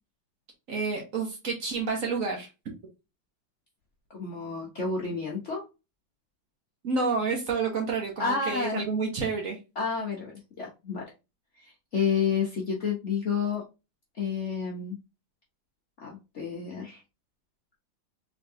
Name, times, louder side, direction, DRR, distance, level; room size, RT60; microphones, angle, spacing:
voice 1, 0.7-2.5 6.8-9.6, right 4 dB, 50° right, 2 dB, 1.3 m, -29 dB
voice 2, 4.1-5.6 8.2-8.8 9.8-11.0 11.6-13.6 14.2-15.0 16.0-17.0, left 5 dB, 50° left, -2 dB, 1.0 m, -30 dB
3.7 x 3.5 x 2.6 m, 0.27 s
omnidirectional pair, 2.1 m